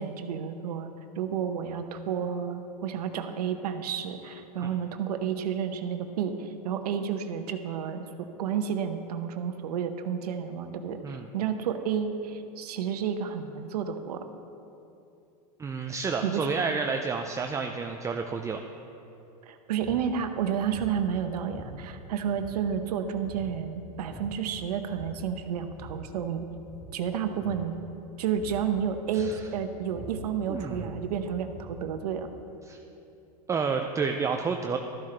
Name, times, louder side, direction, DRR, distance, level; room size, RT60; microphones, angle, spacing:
voice 1, 0.0-14.2 16.2-16.5 19.5-26.5 26.9-27.7 28.2-32.3, right 7 dB, 80° right, 7 dB, 0.9 m, -31 dB
voice 2, 15.6-18.6 29.1-29.4 30.5-30.9 32.7-32.8 33.5-34.8, right 5 dB, 15° right, 4 dB, 0.4 m, -30 dB
sound 1, 19.8-20.1 20.7-21.0 21.5-22.0 22.3-22.8 23.2-23.5 23.9-24.5 24.9-25.3 25.6-26.1 26.5-26.9 27.4-27.7 28.4-28.7 29.2-29.5 29.8-31.9, right 1 dB, 25° left, 2.4 m, -44 dB
13.0 x 12.0 x 3.3 m, 2.8 s
hypercardioid pair, 115°, 20 cm